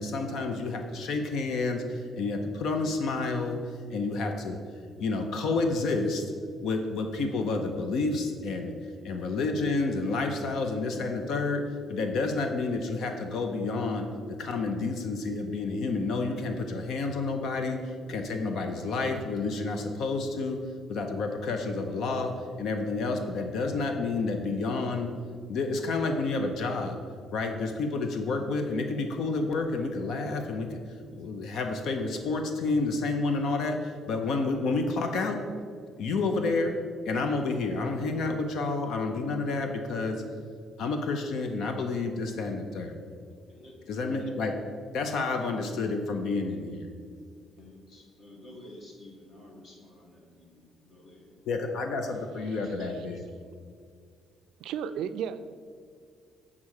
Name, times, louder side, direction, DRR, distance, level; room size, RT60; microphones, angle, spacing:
voice 1, 0.0-3.6 3.9-4.6 5.0-6.2 6.6-8.7 9.0-25.1 25.5-27.0 27.3-30.8 31.1-35.4 36.0-36.8 37.1-40.2 40.8-43.0 43.9-46.9 51.5-53.2, left 3 dB, 60° left, 5 dB, 0.6 m, -30 dB
voice 2, 43.5-44.1 47.6-52.5 52.7-53.2, left 1 dB, 40° left, -1 dB, 1.5 m, -52 dB
voice 3, 52.5-53.1 54.6-55.4, right 8 dB, 80° right, 11 dB, 0.3 m, -35 dB
7.3 x 3.6 x 6.4 m, 2.1 s
cardioid pair, 175°, 0 cm